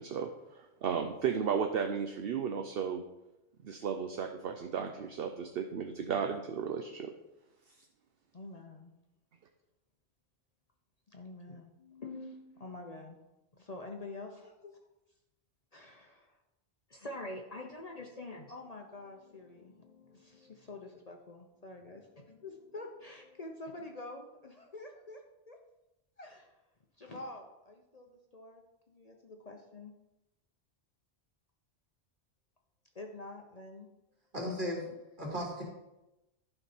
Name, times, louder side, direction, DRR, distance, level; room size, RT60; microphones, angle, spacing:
voice 1, 0.0-3.0 3.6-7.1, right 7 dB, 65° right, 6 dB, 0.8 m, -34 dB
voice 2, 8.3-8.9 11.1-13.2 13.5-14.8 15.7-16.4 16.9-25.6 26.2-26.5 27.0-28.6 28.9-29.9 32.9-33.9, left 2 dB, 40° left, 2 dB, 0.8 m, -47 dB
voice 3, 34.3-34.9 35.2-35.6, left 1 dB, 45° right, -3 dB, 2.8 m, -35 dB
11.5 x 5.4 x 4.2 m, 0.94 s
omnidirectional pair, 1.1 m